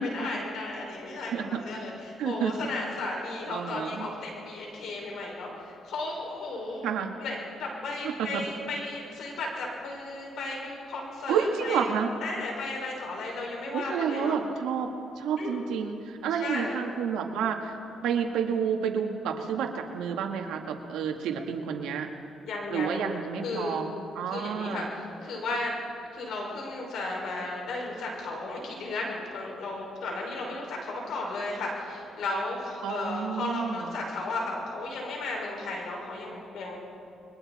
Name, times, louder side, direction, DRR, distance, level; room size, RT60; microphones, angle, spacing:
voice 1, 0.1-6.9 7.2-11.8 12.2-14.3 15.4-15.6 16.4-16.8 22.4-23.1 23.4-23.8 24.3-25.7 26.1-36.8, left 2 dB, 75° left, -1 dB, 5.9 m, -34 dB
voice 2, 2.2-2.5 3.5-4.1 6.8-7.1 8.0-8.4 11.3-12.1 13.7-17.7 18.0-22.1 22.7-24.9 32.8-33.9, right 7 dB, 85° right, 3 dB, 2.0 m, -30 dB
29.5 x 22.5 x 4.4 m, 2.9 s
cardioid pair, 90°, 0 cm